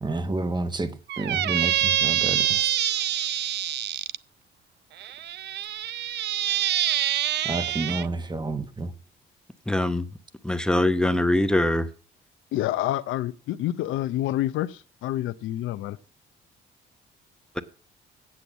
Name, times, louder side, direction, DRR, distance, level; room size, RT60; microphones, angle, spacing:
voice 1, 0.0-2.7 7.4-8.9, right 2 dB, 20° right, 1.2 m, -30 dB
Squeak, 1.1-4.2 5.0-8.1, right 12 dB, 60° right, 0.4 m, -26 dB
voice 2, 9.7-10.0 10.4-11.9, left 1 dB, 5° left, 0.8 m, -22 dB
voice 3, 12.5-16.0, left 14 dB, 85° left, 0.6 m, -28 dB
8.5 x 7.8 x 7.2 m
cardioid pair, 90°, 20 cm